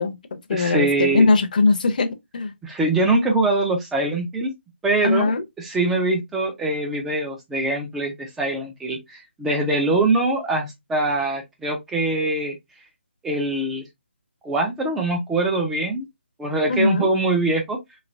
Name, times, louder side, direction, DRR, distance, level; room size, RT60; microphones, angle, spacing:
voice 1, 0.0-2.5 5.0-5.4 16.7-17.1, left 3 dB, 45° left, 0.6 m, -20 dB
voice 2, 0.5-1.2 2.6-4.5 4.8-5.3 5.6-12.6 13.2-13.8 14.4-16.1 16.4-17.8, right 2 dB, 5° right, 0.3 m, -23 dB
3.1 x 2.8 x 2.6 m
hypercardioid pair, 165°, 6 cm